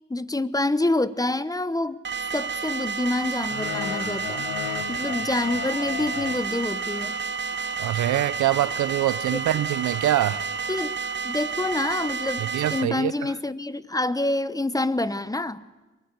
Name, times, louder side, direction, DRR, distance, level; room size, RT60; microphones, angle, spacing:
voice 1, 0.1-2.0 2.3-4.5 4.9-7.2 9.3-9.4 10.7-15.6, left 2 dB, 10° left, 0.9 m, -27 dB
sound 1, 2.0-12.8, right 5 dB, 40° right, 1.2 m, -30 dB
sound 2, 3.4-10.8, left 12 dB, 90° left, 1.1 m, -38 dB
voice 2, 7.8-10.4 12.4-13.1, right 13 dB, 70° right, 0.8 m, -24 dB
23.0 x 22.5 x 8.2 m
cardioid pair, 90°, 30 cm